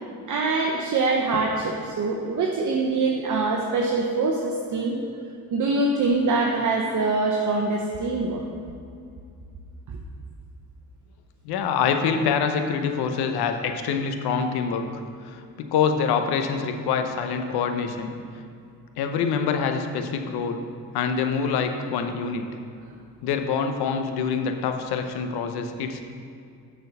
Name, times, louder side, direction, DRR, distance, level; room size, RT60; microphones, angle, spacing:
voice 1, 0.3-5.0 5.5-8.4, right 3 dB, 50° right, 0 dB, 0.8 m, -24 dB
voice 2, 11.4-14.9 15.2-18.1 19.0-20.6 20.9-22.4 23.2-26.0, left 6 dB, 80° left, 6 dB, 0.7 m, -25 dB
6.6 x 4.4 x 6.7 m, 2.4 s
supercardioid pair, 65°, 38 cm